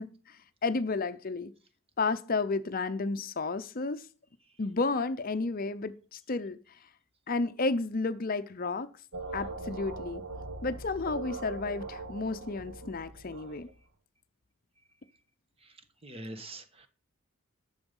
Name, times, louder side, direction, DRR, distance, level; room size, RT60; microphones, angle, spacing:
voice 1, 0.0-1.5 2.0-4.1 4.6-6.6 7.3-8.9 9.3-10.2 10.6-13.7, left 3 dB, 40° left, 0.6 m, -32 dB
sound 1, 9.1-13.8, right 2 dB, 65° right, 1.2 m, -41 dB
voice 2, 16.0-16.9, right 1 dB, 25° right, 1.4 m, -44 dB
12.0 x 7.1 x 5.4 m
head